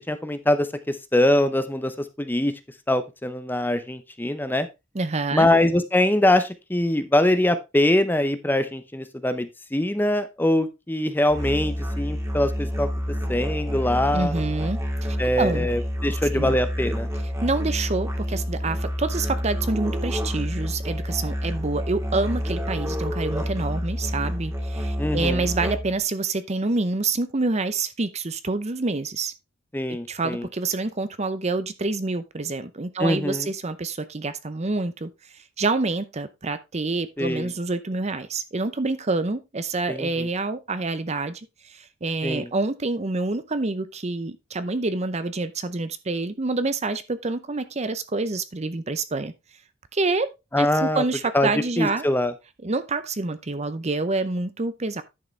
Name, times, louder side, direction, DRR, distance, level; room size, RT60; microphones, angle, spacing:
voice 1, 0.0-2.5 2.9-4.7 5.3-12.9 13.3-14.3 15.2-17.1 25.0-25.5 29.7-30.5 33.0-33.5 37.2-37.5 39.9-40.3 42.2-42.5 50.5-51.0 51.3-51.5 51.8-52.3, left 1 dB, 10° left, 0.7 m, -23 dB
voice 2, 4.9-5.5 14.1-15.7 16.1-16.6 17.4-29.3 30.1-35.1 35.6-49.3 49.9-50.3 50.6-52.1 52.6-55.0, right 3 dB, 35° right, 0.7 m, -27 dB
Musical instrument, 11.3-26.0, equal, 15° right, 2.0 m, -28 dB
10.5 x 6.4 x 3.3 m
head